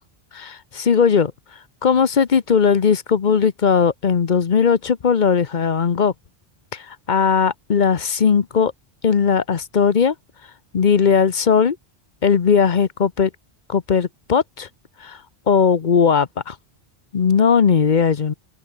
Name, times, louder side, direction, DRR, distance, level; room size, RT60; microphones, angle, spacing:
voice 1, 0.3-1.3 1.8-6.1 6.7-8.7 9.0-10.1 10.7-11.8 12.2-13.3 13.7-14.7 15.0-15.2 15.5-16.5 17.1-18.3, left 6 dB, 50° left, 1.0 m, -18 dB
omnidirectional pair, 1.0 m